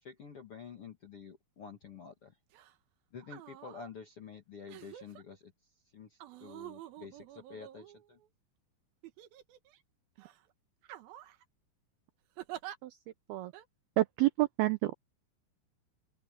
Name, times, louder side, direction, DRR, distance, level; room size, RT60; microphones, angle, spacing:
voice 1, 0.0-2.4 3.1-5.5 5.9-8.2, left 6 dB, 60° left, 1.5 m, -49 dB
sound 1, 2.5-2.7 3.2-3.9 4.7-5.2 6.2-8.3 9.0-9.8 10.2-10.4 10.8-11.4 12.4-12.8 13.5-13.7, right 13 dB, 70° right, 2.5 m, -48 dB
voice 2, 14.0-14.9, right 18 dB, 90° right, 2.1 m, -29 dB
open air
omnidirectional pair, 5.4 m